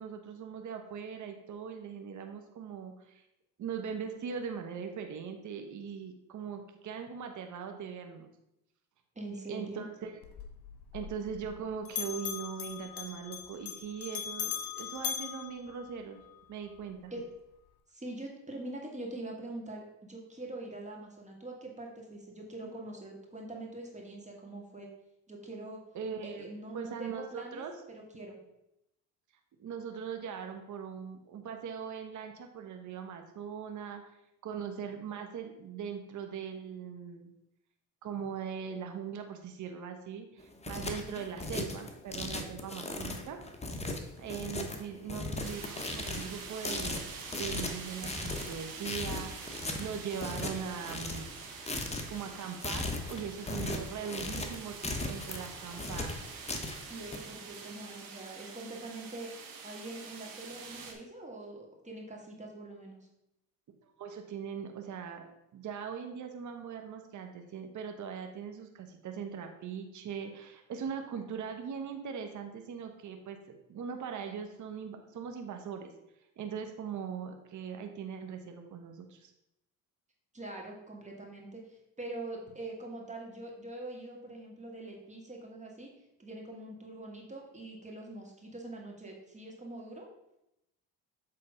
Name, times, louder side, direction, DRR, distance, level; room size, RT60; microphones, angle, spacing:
voice 1, 0.0-3.2 3.6-8.3 9.5-10.2 10.9-16.2 16.5-17.1 22.6-22.7 25.9-26.4 26.7-27.7 29.6-34.0 34.4-37.3 38.0-43.4 44.2-47.0 47.4-51.3 52.1-56.3 64.0-65.3 65.5-75.9 76.4-79.3, right 7 dB, 50° right, 5 dB, 1.1 m, -40 dB
voice 2, 9.2-9.9 17.1-17.2 17.9-24.9 25.3-25.8 26.2-28.4 41.0-41.2 44.7-45.2 56.9-59.3 59.6-63.1 80.3-85.9 86.2-90.1, right 2 dB, 20° right, -1 dB, 2.2 m, -44 dB
Bell, 10.2-11.6 11.9-16.3, left 9 dB, 60° left, 1.4 m, -40 dB
sound 1, 40.4-57.2, left 2 dB, 15° left, 1.1 m, -37 dB
sound 2, 45.4-60.9, right 5 dB, 65° right, 1.6 m, -46 dB
7.7 x 3.8 x 5.1 m, 0.86 s
supercardioid pair, 75°, 39 cm